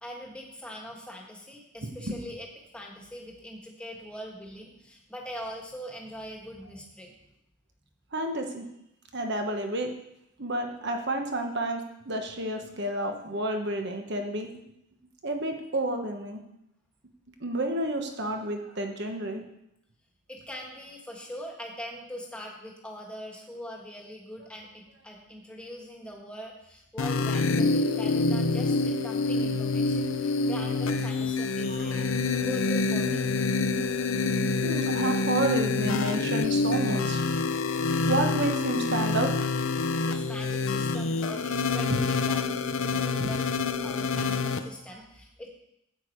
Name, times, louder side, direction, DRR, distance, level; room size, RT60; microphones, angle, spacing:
voice 1, 0.0-2.5 2.7-7.1 20.3-33.3 39.8-45.5, equal, 5° left, -1 dB, 1.5 m, -42 dB
voice 2, 8.1-8.6 9.1-9.9 10.4-14.5 15.2-16.4 17.4-19.4 31.7-32.0 34.6-37.3 38.1-39.3 43.2-43.3, right 1 dB, 50° right, 4 dB, 1.2 m, -30 dB
sound 1, 27.0-44.6, left 3 dB, 65° left, 0.6 m, -27 dB
9.6 x 8.3 x 4.6 m, 0.81 s
head